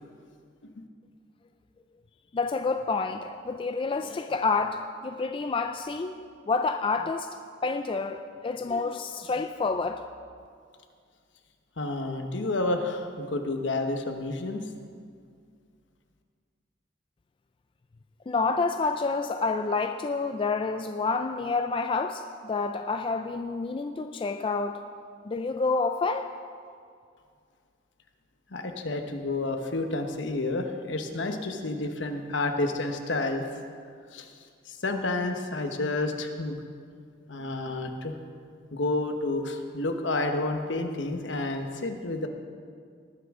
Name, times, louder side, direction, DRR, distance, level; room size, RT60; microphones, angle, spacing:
voice 1, 2.3-6.2 6.5-7.3 7.6-10.0 18.3-24.8 25.3-26.3, left 4 dB, 25° left, 0.3 m, -28 dB
voice 2, 11.8-14.6 28.5-33.4 34.1-34.3 34.7-36.6 37.3-38.1 38.7-42.3, left 2 dB, 70° left, 1.1 m, -30 dB
19.0 x 9.4 x 3.7 m
head